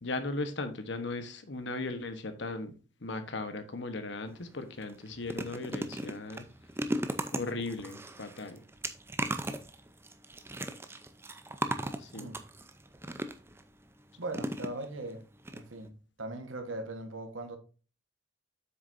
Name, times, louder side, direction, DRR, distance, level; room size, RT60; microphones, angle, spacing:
voice 1, 0.0-6.5 7.3-8.6 12.0-12.3, left 2 dB, 60° left, 1.1 m, -37 dB
sound 1, 4.3-4.4 4.8-13.6 14.3-15.1 15.4-15.6 15.8-15.9, right 1 dB, 10° right, 0.6 m, -37 dB
voice 2, 14.2-15.2 15.5-17.6, right 2 dB, 80° right, 1.4 m, -39 dB
8.0 x 6.4 x 2.6 m
head